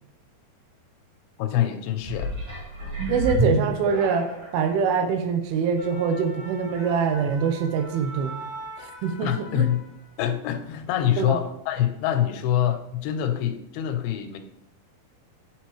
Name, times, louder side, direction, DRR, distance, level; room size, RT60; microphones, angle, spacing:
voice 1, 1.4-2.3 9.2-9.8 10.2-14.4, left 11 dB, 90° left, 7 dB, 2.5 m, -25 dB
sound 1, 2.0-4.6 5.2-5.3, right 2 dB, 30° right, 2.1 m, -28 dB
voice 2, 3.1-8.4 8.8-9.7 11.2-11.4, right 6 dB, 85° right, 7 dB, 2.4 m, -24 dB
sound 2, 5.5-10.3 10.6-10.9, right 2 dB, 60° right, 4.1 m, -42 dB
8.3 x 4.4 x 3.0 m, 0.79 s
omnidirectional pair, 4.3 m